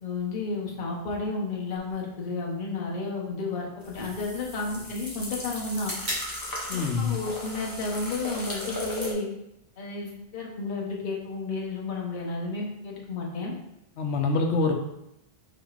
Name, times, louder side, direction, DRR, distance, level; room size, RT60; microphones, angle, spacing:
voice 1, 0.0-5.9 6.7-9.3 9.8-13.5, left 3 dB, 50° left, -3 dB, 1.0 m, -32 dB
sound 1, 1.8-9.7, equal, 45° right, 1.7 m, -43 dB
sound 2, 3.8-9.1, left 1 dB, 20° left, 0.8 m, -37 dB
voice 2, 6.7-7.2 14.0-14.7, left 4 dB, 85° left, 3 dB, 0.9 m, -25 dB
4.8 x 4.2 x 2.4 m, 0.83 s
omnidirectional pair, 1.1 m